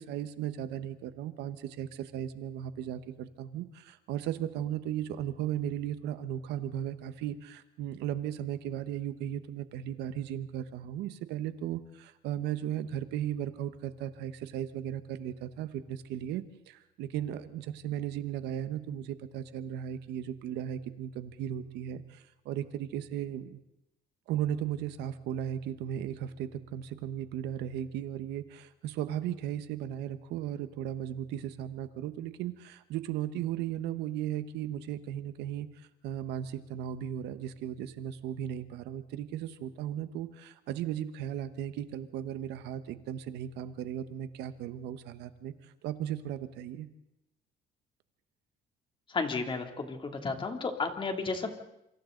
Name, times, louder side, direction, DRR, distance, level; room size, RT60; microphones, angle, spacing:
voice 1, 0.0-23.6 24.3-46.9, right 10 dB, 85° right, 11 dB, 1.3 m, -36 dB
voice 2, 49.1-51.5, left 4 dB, 30° left, 4 dB, 3.0 m, -33 dB
27.5 x 25.5 x 4.0 m, 0.84 s
cardioid pair, 110°, 17 cm